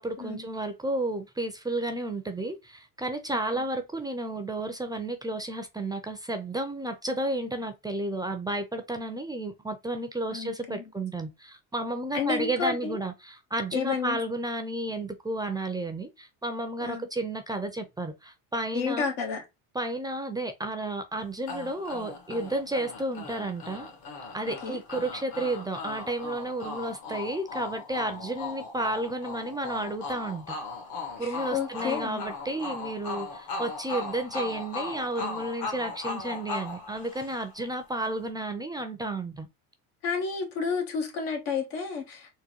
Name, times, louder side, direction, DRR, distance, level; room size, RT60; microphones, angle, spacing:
voice 1, 0.0-19.1 19.7-23.9 24.3-30.6 31.2-39.5, right 1 dB, 10° right, 0.4 m, -32 dB
voice 2, 10.3-10.8 12.1-13.0 13.7-14.2 16.8-17.1 18.7-19.4 24.6-24.8 31.2-32.2 40.0-42.3, left 6 dB, 90° left, 1.3 m, -31 dB
sound 1, 21.5-37.7, left 3 dB, 65° left, 1.5 m, -38 dB
3.7 x 2.2 x 2.7 m
supercardioid pair, 110°, 37 cm